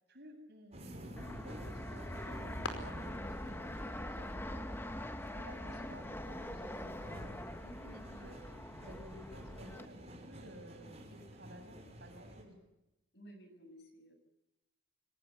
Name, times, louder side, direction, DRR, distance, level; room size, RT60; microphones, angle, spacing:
voice 1, 0.1-4.7 5.3-7.0 7.8-8.4 8.8-10.0 10.3-12.6, equal, 55° right, 3 dB, 7.6 m, -54 dB
sound 1, 0.7-12.4, right 1 dB, 30° right, 5.7 m, -52 dB
Fixed-wing aircraft airplane, 1.2-9.8, left 1 dB, 10° left, 1.1 m, -43 dB
sound 2, 1.7-6.8, left 3 dB, 70° left, 5.0 m, -51 dB
voice 2, 7.6-8.6 13.1-14.1, equal, 55° left, 6 dB, 6.9 m, -55 dB
26.5 x 20.0 x 8.5 m, 0.92 s
head